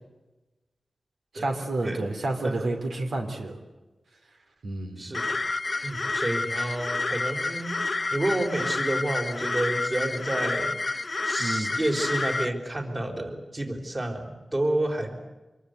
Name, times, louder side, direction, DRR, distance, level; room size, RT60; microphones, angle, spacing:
voice 1, 1.3-3.6 4.6-5.0 11.4-11.8, right 2 dB, 85° right, 3 dB, 3.3 m, -30 dB
voice 2, 5.0-5.4 5.8-10.7 11.2-15.2, right 1 dB, 30° right, 3 dB, 4.3 m, -30 dB
sound 1, 5.1-12.5, left 3 dB, 40° left, 0.8 m, -29 dB
26.5 x 22.0 x 8.2 m, 1.1 s
wide cardioid pair, 90°, 0 cm